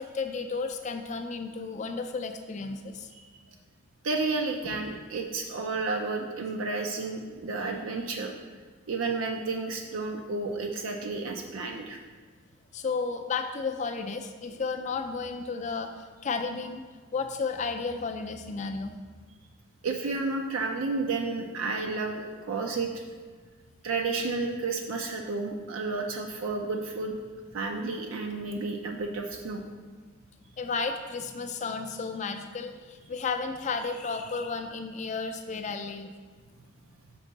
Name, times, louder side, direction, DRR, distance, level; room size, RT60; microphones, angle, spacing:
voice 1, 0.0-3.1 4.6-4.8 12.7-16.9 17.1-19.0 30.6-36.1, left 4 dB, 35° left, 6 dB, 0.4 m, -33 dB
voice 2, 4.0-8.3 8.9-12.0 19.8-23.0 23.8-27.2 27.5-29.6, right 3 dB, 80° right, 3 dB, 0.5 m, -31 dB
6.0 x 4.5 x 4.0 m, 1.5 s
head